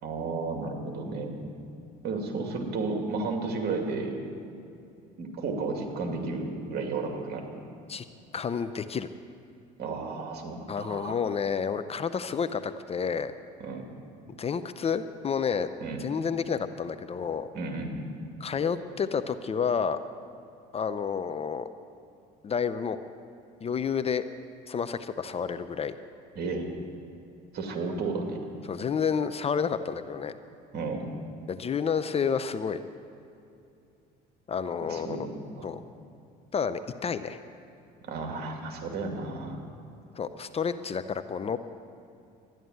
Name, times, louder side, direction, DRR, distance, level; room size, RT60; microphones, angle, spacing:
voice 1, 0.0-1.5 2.0-4.1 5.2-7.5 9.8-11.2 13.6-13.9 15.8-16.1 17.5-18.1 26.3-26.7 27.5-28.6 30.7-31.1 34.8-35.3 35.6-35.7 38.1-39.6, right 3 dB, 55° right, 3 dB, 2.5 m, -33 dB
voice 2, 8.3-9.1 10.7-13.3 14.4-15.7 16.0-17.5 18.4-20.0 20.7-21.7 22.4-23.0 23.6-24.2 24.7-26.0 28.7-30.3 31.5-32.8 34.5-35.3 35.6-35.8 36.5-37.4 40.1-41.6, left 6 dB, 30° left, 11 dB, 0.6 m, -30 dB
13.0 x 11.0 x 9.2 m, 2.6 s
supercardioid pair, 90°, 20 cm